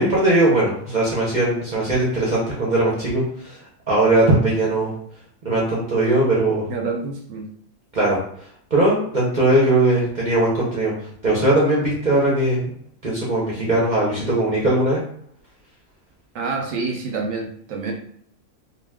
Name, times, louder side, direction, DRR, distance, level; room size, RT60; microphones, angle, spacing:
voice 1, 0.0-3.6 3.9-4.9 5.4-6.7 7.9-8.2 8.7-10.9 11.2-12.6 13.0-15.0, right 1 dB, 45° right, -4 dB, 0.6 m, -19 dB
voice 2, 6.7-7.5 16.3-17.9, right 4 dB, 70° right, 2 dB, 0.9 m, -27 dB
2.3 x 2.3 x 3.4 m, 0.62 s
omnidirectional pair, 1.5 m